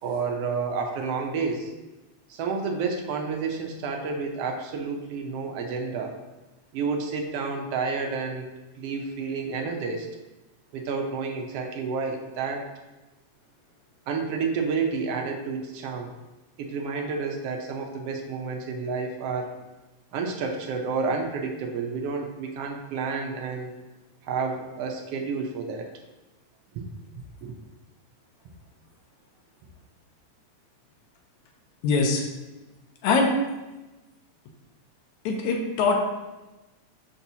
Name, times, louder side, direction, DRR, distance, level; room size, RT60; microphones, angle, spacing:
voice 1, 0.0-1.7 2.3-6.2 6.7-8.5 8.8-10.1 10.7-12.7 14.1-16.1 16.6-19.6 20.1-23.7 24.3-25.9 26.7-26.8 27.4-27.5, right 4 dB, 70° right, 2 dB, 1.5 m, -30 dB
voice 2, 31.8-32.2 33.0-33.3 35.3-36.0, left 4 dB, 85° left, 0 dB, 2.2 m, -22 dB
6.8 x 5.7 x 2.8 m, 1.1 s
omnidirectional pair, 3.3 m